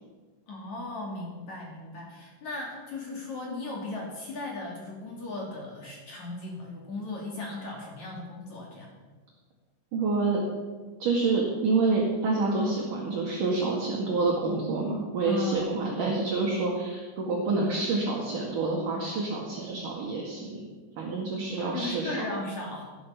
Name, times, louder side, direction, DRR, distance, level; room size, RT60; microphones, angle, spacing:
voice 1, 0.5-8.9 15.2-15.7 21.6-22.8, left 2 dB, 45° left, -2 dB, 3.8 m, -37 dB
voice 2, 9.9-10.4 11.0-20.7 21.0-22.2, right 3 dB, 55° right, -2 dB, 3.2 m, -27 dB
18.5 x 11.0 x 5.9 m, 1.3 s
omnidirectional pair, 5.0 m